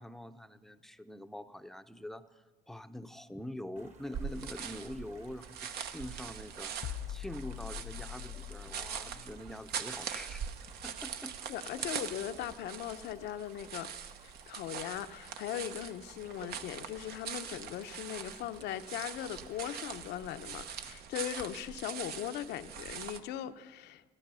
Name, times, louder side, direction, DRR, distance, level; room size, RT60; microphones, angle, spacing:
voice 1, 0.0-11.3, left 1 dB, ahead, 10 dB, 0.6 m, -45 dB
sound 1, 3.8-21.0, right 4 dB, 40° right, 1.4 m, -59 dB
sound 2, 4.1-23.2, right 7 dB, 70° right, 1.0 m, -43 dB
sound 3, 6.8-12.5 12.8-13.0, left 11 dB, 50° left, 0.4 m, -45 dB
voice 2, 11.5-13.9 14.2-24.0, left 11 dB, 80° left, 10 dB, 0.8 m, -39 dB
14.5 x 13.0 x 6.9 m, 1.4 s
cardioid pair, 110°, 17 cm